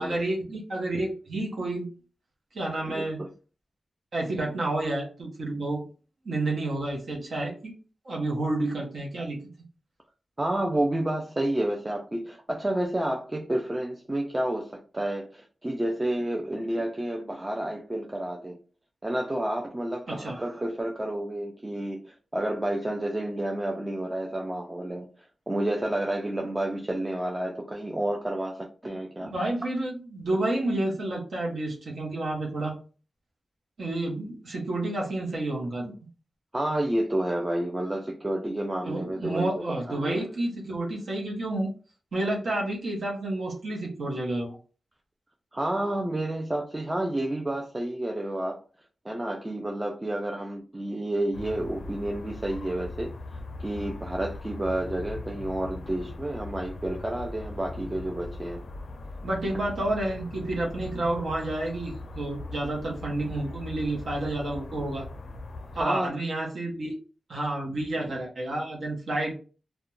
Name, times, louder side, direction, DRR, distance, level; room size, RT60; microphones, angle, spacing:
voice 1, 0.0-1.9 2.5-3.2 4.1-5.8 6.2-7.7 8.0-9.4 20.1-20.4 29.2-32.8 33.8-35.9 38.8-41.7 42.1-44.6 59.2-65.1 65.8-66.9 67.3-69.3, right 2 dB, 75° right, 0.7 m, -30 dB
voice 2, 2.9-3.3 10.4-18.6 19.0-25.1 25.5-29.3 36.5-40.2 45.5-48.6 49.0-53.1 53.6-58.6 65.8-66.1, right 1 dB, 20° right, 0.3 m, -30 dB
sound 1, 51.3-65.8, left 2 dB, 70° left, 0.4 m, -40 dB
2.3 x 2.1 x 2.9 m
wide cardioid pair, 110°, 0 cm